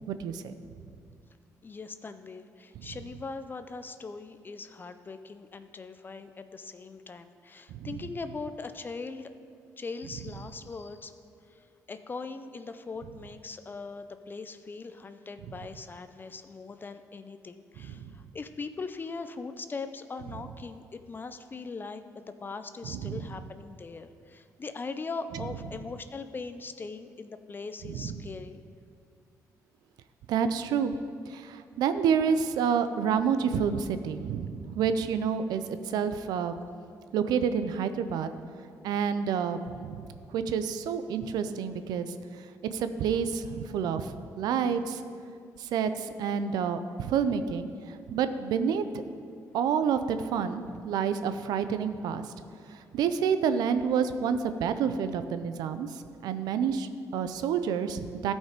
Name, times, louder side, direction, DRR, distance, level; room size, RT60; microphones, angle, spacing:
voice 1, 0.1-0.5 7.7-7.9 18.0-18.1 22.9-23.2 27.9-28.2 30.3-30.9 31.3-36.5 37.1-38.3 38.8-42.1 42.7-45.0 45.6-48.8 49.5-52.2 52.7-58.3, right 7 dB, 90° right, 11 dB, 0.5 m, -29 dB
voice 2, 1.6-9.3 9.8-11.1 11.5-28.6, left 4 dB, 30° left, 10 dB, 0.5 m, -40 dB
13.5 x 5.3 x 5.1 m, 2.4 s
cardioid pair, 95°, 7 cm